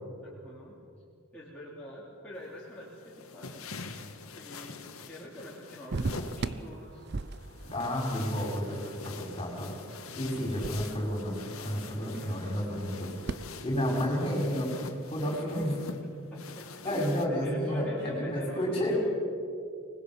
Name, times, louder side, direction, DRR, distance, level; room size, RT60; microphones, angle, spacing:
voice 1, 0.2-0.8 1.3-3.7 4.2-7.1 11.8-12.5 15.4-15.7 16.3-19.0, equal, 5° left, -7 dB, 3.2 m, -45 dB
sound 1, 2.3-17.3, left 3 dB, 85° left, 1.7 m, -45 dB
sound 2, 5.9-13.4, right 3 dB, 50° right, 0.6 m, -40 dB
voice 2, 7.7-8.8 9.0-9.7 10.1-13.1 13.6-14.7 15.1-15.8 16.8-18.9, equal, 25° left, 0 dB, 5.3 m, -31 dB
25.0 x 20.0 x 7.3 m, 2.4 s
head